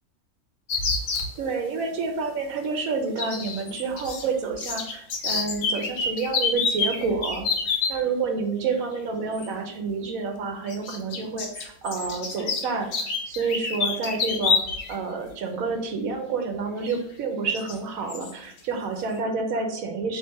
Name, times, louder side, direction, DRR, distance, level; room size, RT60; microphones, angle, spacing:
sound 1, 0.7-1.3 3.2-4.3 4.5-7.9 9.3-9.5 10.7-14.9 15.3-15.4 16.9-17.0 17.5-17.8 18.1-18.3, left 4 dB, 75° left, 1.1 m, -27 dB
voice 1, 1.4-7.5 7.9-12.9 13.3-14.6 14.9-20.2, right 4 dB, 75° right, 4 dB, 1.1 m, -29 dB
3.5 x 2.8 x 4.3 m, 0.69 s
omnidirectional pair, 1.5 m